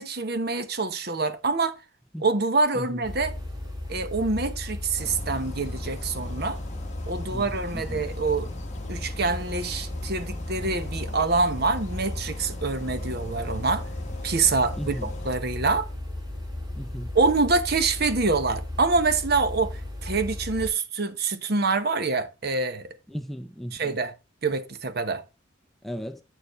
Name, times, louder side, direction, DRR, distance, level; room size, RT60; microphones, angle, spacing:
voice 1, 0.0-1.8 2.2-3.3 3.9-6.6 7.1-8.5 8.9-13.9 14.2-15.9 17.1-22.9 23.7-24.1 24.4-25.2, right 3 dB, 50° right, 0.9 m, -26 dB
voice 2, 2.7-3.0 7.3-8.0 14.8-15.1 16.8-17.1 23.1-24.0 25.8-26.2, equal, ahead, 0.5 m, -36 dB
sound 1, 3.0-20.7, left 1 dB, 20° right, 2.6 m, -35 dB
sound 2, 5.0-15.4, left 2 dB, 35° left, 0.9 m, -41 dB
8.2 x 6.9 x 3.1 m
head